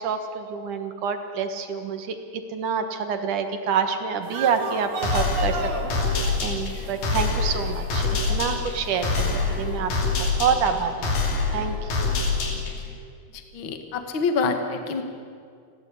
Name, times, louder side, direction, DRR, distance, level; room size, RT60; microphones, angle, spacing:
voice 1, 0.0-9.9 10.2-11.1 11.5-12.0, right 6 dB, 70° right, 7 dB, 2.8 m, -27 dB
sound 1, 4.2-10.2, right 4 dB, 45° right, 2.5 m, -36 dB
sound 2, 5.0-12.9, left 4 dB, 85° left, 4.6 m, -26 dB
voice 2, 13.5-15.0, left 4 dB, 45° left, 6 dB, 2.0 m, -26 dB
29.5 x 12.5 x 8.5 m, 2.3 s
omnidirectional pair, 3.8 m